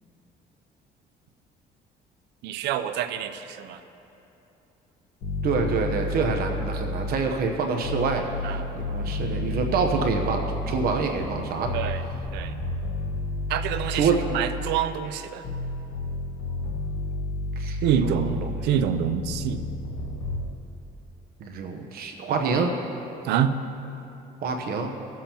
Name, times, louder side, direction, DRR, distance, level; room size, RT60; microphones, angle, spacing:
voice 1, 2.4-3.8 8.4-8.7 11.7-12.0 12.3-12.5 13.5-15.4 17.8-19.6 22.5-22.7 23.2-23.5, right 9 dB, 85° right, 10 dB, 0.6 m, -27 dB
sound 1, 5.2-7.4 7.8-14.9 15.4-20.4, left 2 dB, 80° left, 1.3 m, -31 dB
voice 2, 5.4-11.7 13.9-14.3 17.6-18.5 21.4-22.7 24.4-24.9, right 5 dB, 65° right, 3 dB, 0.9 m, -27 dB
19.5 x 7.5 x 2.9 m, 3.0 s
cardioid pair, 110°, 17 cm